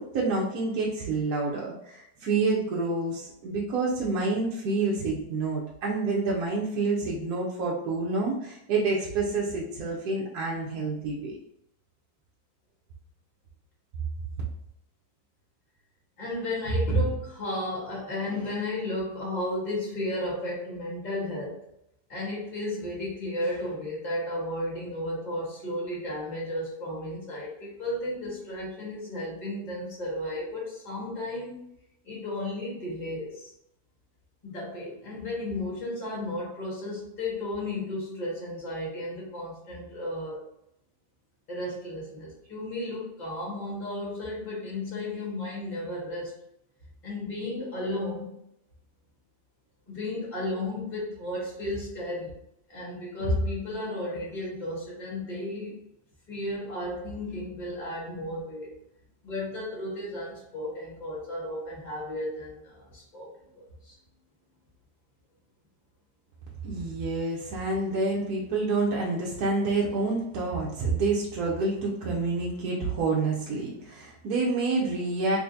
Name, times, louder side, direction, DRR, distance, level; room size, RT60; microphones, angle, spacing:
voice 1, 0.0-11.4 66.6-75.4, right 3 dB, 75° right, -4 dB, 1.1 m, -28 dB
voice 2, 16.2-21.6 22.1-31.7 32.0-33.5 34.4-40.4 41.5-46.3 47.0-48.3 49.9-52.3 52.7-55.8 56.3-58.7 59.2-63.9, left 1 dB, 30° left, -5 dB, 1.5 m, -33 dB
3.6 x 3.1 x 2.6 m, 0.81 s
omnidirectional pair, 1.7 m